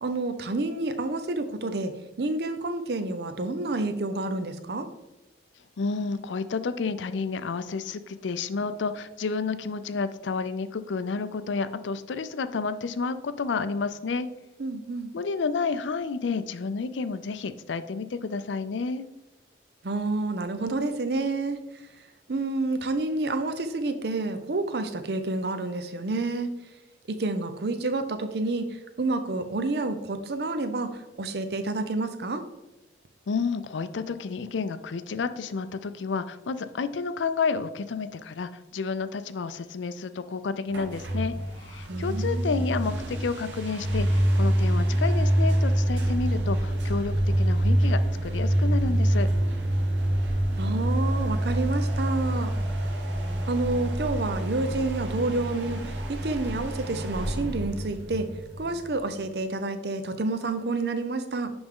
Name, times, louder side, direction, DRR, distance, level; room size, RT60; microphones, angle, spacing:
voice 1, 0.0-1.9 2.2-4.9 14.6-15.1 19.8-21.9 22.3-26.5 27.1-32.4 41.9-42.6 50.6-52.5 53.5-58.3 58.6-61.5, right 2 dB, 60° right, 9 dB, 0.6 m, -29 dB
voice 2, 5.8-14.3 15.1-19.0 33.3-49.3, left 4 dB, 90° left, 12 dB, 0.5 m, -30 dB
sound 1, 40.7-59.2, right 1 dB, 85° right, 1.1 m, -26 dB
10.5 x 3.5 x 3.7 m, 0.99 s
head